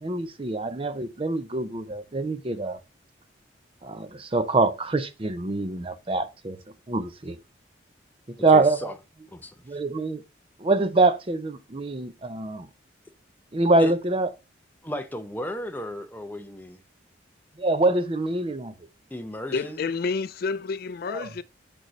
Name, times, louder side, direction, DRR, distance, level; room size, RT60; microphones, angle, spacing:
voice 1, 0.0-2.8 3.8-6.6 6.9-7.4 8.4-8.8 9.7-10.2 10.6-12.7 13.5-14.3 17.6-18.7 21.1-21.3, right 2 dB, 30° right, 0.5 m, -24 dB
voice 2, 8.5-8.9 9.3-9.8 13.8-13.9 14.8-16.8 19.1-19.9, left 1 dB, 10° left, 0.6 m, -35 dB
voice 3, 19.5-21.4, left 4 dB, 50° left, 0.3 m, -29 dB
6.5 x 6.2 x 3.1 m
head